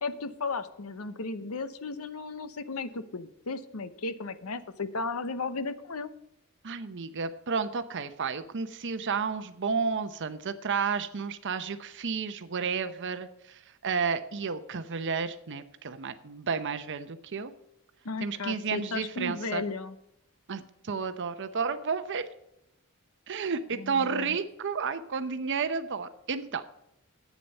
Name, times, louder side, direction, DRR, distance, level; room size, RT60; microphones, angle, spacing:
voice 1, 0.0-6.1 18.0-20.0 23.7-24.4, left 3 dB, 70° left, 13 dB, 0.8 m, -35 dB
voice 2, 6.6-17.5 18.2-19.6 20.5-22.3 23.3-26.6, right 5 dB, 55° right, 11 dB, 0.7 m, -32 dB
11.0 x 8.4 x 5.4 m, 0.83 s
head